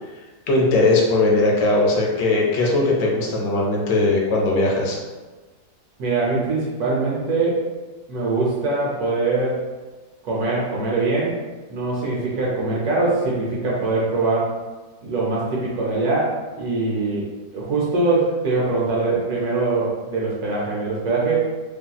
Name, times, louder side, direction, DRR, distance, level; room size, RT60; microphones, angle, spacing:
voice 1, 0.5-5.0, left 2 dB, 80° left, -2 dB, 1.2 m, -19 dB
voice 2, 6.0-7.6 8.1-9.7 10.2-11.4 11.7-14.5 15.0-21.4, right 3 dB, 70° right, -6 dB, 1.1 m, -22 dB
2.9 x 2.6 x 2.2 m, 1.3 s
omnidirectional pair, 1.9 m